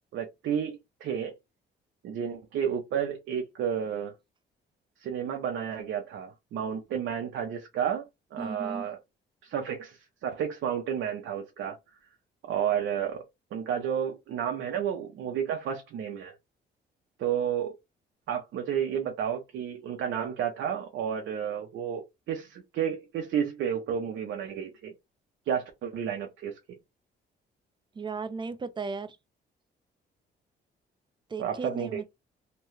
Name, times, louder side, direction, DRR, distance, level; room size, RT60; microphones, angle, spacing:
voice 1, 0.1-1.4 2.0-4.1 5.0-8.1 8.3-9.0 9.4-11.8 12.5-13.2 13.5-16.3 17.2-17.7 18.3-24.9 25.5-26.6 31.4-32.0, right 8 dB, 75° right, 0.6 m, -31 dB
voice 2, 8.4-8.9 28.0-29.2 31.3-32.0, right 4 dB, 25° right, 0.5 m, -35 dB
2.8 x 2.2 x 3.0 m
cardioid pair, 90°, 20 cm